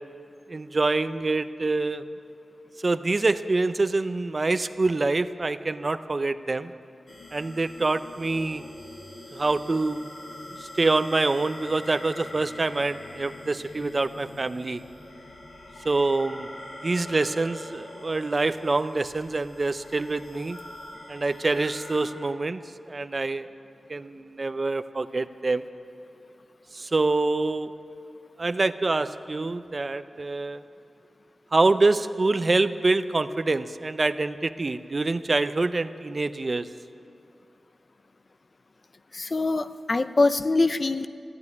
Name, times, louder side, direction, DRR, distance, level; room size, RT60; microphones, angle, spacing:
voice 1, 0.5-2.0 2.8-6.7 7.3-8.6 9.3-10.0 10.6-14.8 15.8-16.5 16.8-20.6 21.1-22.6 22.9-23.5 23.9-25.6 26.7-27.7 28.4-30.6 31.5-36.7, right 3 dB, 40° right, 12 dB, 0.4 m, -25 dB
sound 1, 7.1-22.0, left 1 dB, 75° left, 3.2 m, -44 dB
voice 2, 39.1-41.1, left 3 dB, 40° left, 13 dB, 0.4 m, -23 dB
14.0 x 9.5 x 9.7 m, 2.5 s
wide cardioid pair, 115°, 0 cm